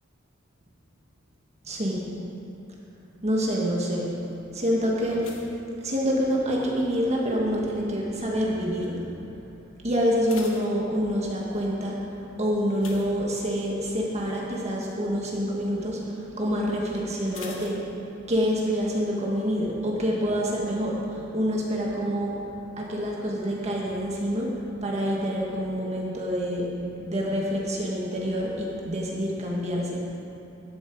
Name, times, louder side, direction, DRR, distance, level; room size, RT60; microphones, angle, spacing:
voice 1, 1.6-2.1 3.2-4.1 4.5-5.3 5.8-9.1 9.8-12.0 12.4-17.9 18.3-22.4 22.8-26.7 27.0-30.0, equal, 35° right, -3 dB, 1.6 m, -27 dB
sound 1, 5.2-6.7 6.9-7.4 8.0-8.4 8.7-8.8 9.2-9.3 9.9-11.5 12.7-13.9 14.2-14.5 14.9-15.0 17.3-18.5 18.8-18.9, left 4 dB, 70° left, 1.6 m, -45 dB
13.0 x 12.0 x 4.7 m, 2.9 s
head